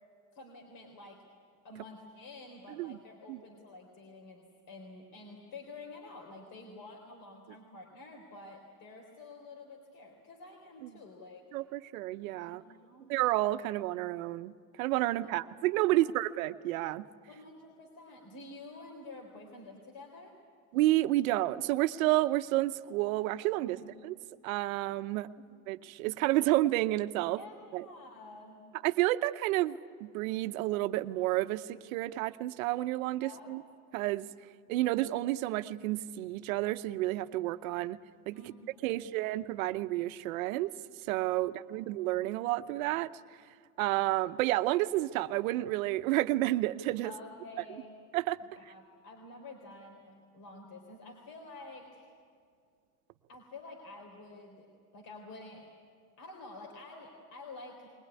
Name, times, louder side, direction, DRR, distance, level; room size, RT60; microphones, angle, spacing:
voice 1, 0.3-1.2 1.6-11.4 12.4-13.1 15.2-15.4 16.0-16.1 17.3-20.3 23.6-24.0 25.4-25.5 27.4-28.6 33.2-33.5 38.3-39.2 41.3-41.4 41.8-41.9 47.0-48.0 48.6-52.0 53.3-54.7 54.9-55.7 56.2-57.9, left 2 dB, 50° left, 1 dB, 3.6 m, -49 dB
voice 2, 11.5-12.6 13.1-14.5 14.8-17.1 20.7-23.8 24.0-24.1 24.4-25.3 25.7-27.4 27.7-27.8 28.8-33.6 33.9-34.3 34.7-38.0 38.3-38.4 38.8-40.7 41.1-43.1 43.8-47.1 48.1-48.4, right 16 dB, 80° right, 12 dB, 0.9 m, -30 dB
21.5 x 19.5 x 9.7 m, 2.2 s
supercardioid pair, 120°, 41 cm